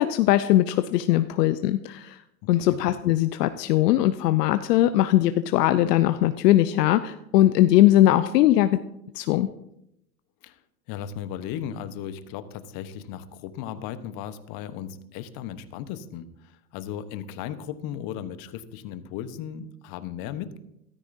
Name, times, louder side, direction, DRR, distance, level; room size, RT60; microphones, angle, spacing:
voice 1, 0.0-2.2 2.5-8.8 9.1-9.5, left 14 dB, 75° left, 11 dB, 0.6 m, -20 dB
voice 2, 2.5-2.8 10.4-10.6 10.9-20.6, left 9 dB, 45° left, 12 dB, 1.0 m, -36 dB
14.0 x 13.0 x 2.7 m, 0.81 s
hypercardioid pair, 105°, 49 cm